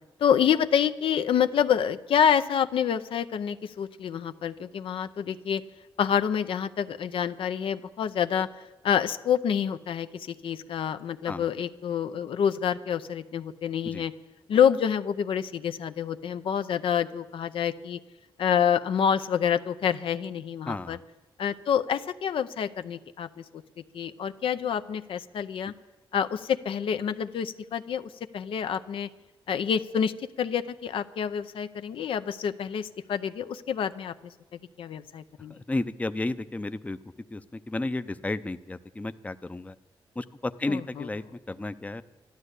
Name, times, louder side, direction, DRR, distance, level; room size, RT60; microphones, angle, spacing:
voice 1, 0.2-5.6 6.0-8.5 8.8-14.1 14.5-18.0 18.4-21.0 21.4-23.6 23.9-25.7 26.1-29.1 29.5-34.3 34.8-35.6 40.7-41.1, left 8 dB, 85° left, 11 dB, 0.6 m, -27 dB
voice 2, 20.7-21.0 35.5-37.0 37.3-39.8 40.2-42.0, left 2 dB, 15° left, 12 dB, 0.5 m, -33 dB
12.0 x 12.0 x 8.1 m, 1.1 s
cardioid pair, 95°, 9 cm